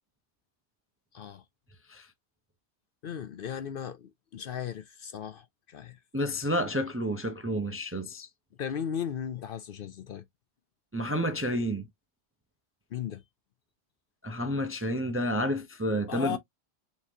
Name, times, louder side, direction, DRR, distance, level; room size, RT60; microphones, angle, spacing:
voice 1, 3.0-6.0 8.6-10.3 12.9-13.2 16.1-16.4, left 8 dB, 60° left, 0.7 m, -36 dB
voice 2, 6.1-8.3 10.9-11.9 14.2-16.4, equal, 20° right, 0.4 m, -30 dB
5.5 x 3.1 x 2.7 m
omnidirectional pair, 1.2 m